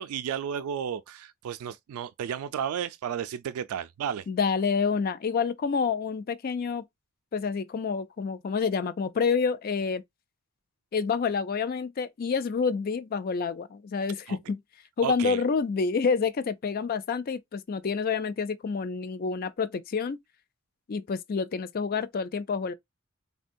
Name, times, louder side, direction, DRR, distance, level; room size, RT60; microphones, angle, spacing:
voice 1, 0.0-4.3 14.3-14.4 15.0-15.4, right 8 dB, 85° right, 0.3 m, -33 dB
voice 2, 4.3-6.8 7.3-10.0 10.9-14.6 15.0-20.2 20.9-22.7, left 5 dB, 45° left, 0.4 m, -28 dB
3.5 x 2.2 x 2.5 m
head